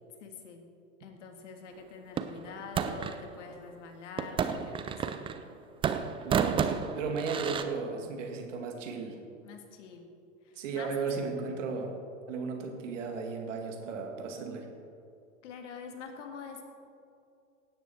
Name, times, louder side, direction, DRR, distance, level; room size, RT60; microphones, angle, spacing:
voice 1, 0.2-0.6 1.0-5.2 9.4-10.1 10.4-10.9 15.4-16.7, left 5 dB, 65° left, 5 dB, 1.9 m, -45 dB
sound 1, 2.2-3.2 4.2-5.5 5.8-7.6, right 7 dB, 15° right, 0.4 m, -31 dB
voice 2, 6.2-6.6 7.0-9.2 10.6-11.9 12.3-14.7, right 4 dB, 65° right, 3 dB, 2.2 m, -35 dB
17.0 x 9.2 x 4.4 m, 2.5 s
hypercardioid pair, 95°, 39 cm